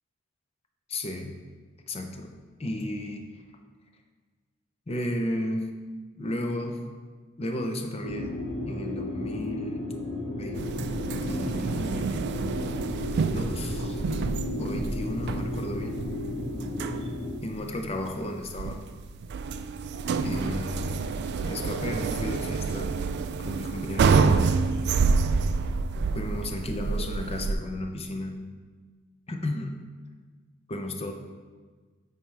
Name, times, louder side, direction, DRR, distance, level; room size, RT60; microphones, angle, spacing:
voice 1, 0.9-1.4 1.9-2.3 2.6-3.3 4.9-5.7 6.2-6.8 7.4-8.3 8.7-9.9 10.4-10.7 11.3-12.2 13.3-14.0 14.6-16.0 17.4-18.8 20.2-21.1 21.4-23.0 23.4-24.6 26.1-28.4 29.3-29.8 30.7-31.1, left 1 dB, 30° left, 4 dB, 0.6 m, -34 dB
sound 1, 8.0-17.3, left 1 dB, 50° left, 1.5 m, -33 dB
sound 2, 10.5-27.5, right 4 dB, 55° right, 0.3 m, -28 dB
8.3 x 4.5 x 3.3 m, 1.4 s
head